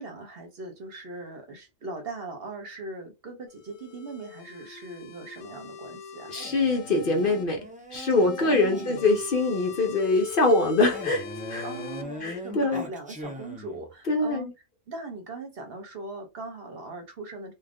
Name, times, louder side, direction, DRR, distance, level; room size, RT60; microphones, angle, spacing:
voice 1, 0.0-6.3 8.1-9.2 11.6-14.5 14.9-17.5, right 3 dB, 55° right, 0.8 m, -39 dB
sound 1, 3.5-7.4 7.9-12.0, left 7 dB, 80° left, 1.0 m, -42 dB
voice 2, 6.3-7.6 7.9-11.7 12.2-12.8 14.1-14.5, left 3 dB, 50° left, 0.8 m, -24 dB
Male speech man speaking, 6.3-9.4 10.9-13.9, left 1 dB, 15° right, 0.3 m, -40 dB
2.4 x 2.3 x 3.4 m
omnidirectional pair, 1.3 m